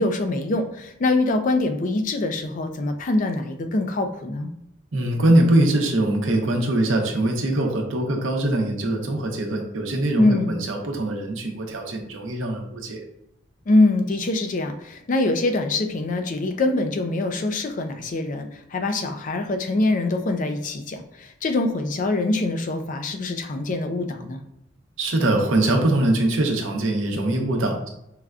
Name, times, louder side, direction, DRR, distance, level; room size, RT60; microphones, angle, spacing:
voice 1, 0.0-4.5 10.2-10.5 13.7-24.4, left 2 dB, 40° left, 6 dB, 0.4 m, -24 dB
voice 2, 4.9-13.0 25.0-27.9, right 1 dB, 80° right, 2 dB, 0.7 m, -22 dB
4.8 x 2.2 x 2.4 m, 0.82 s
head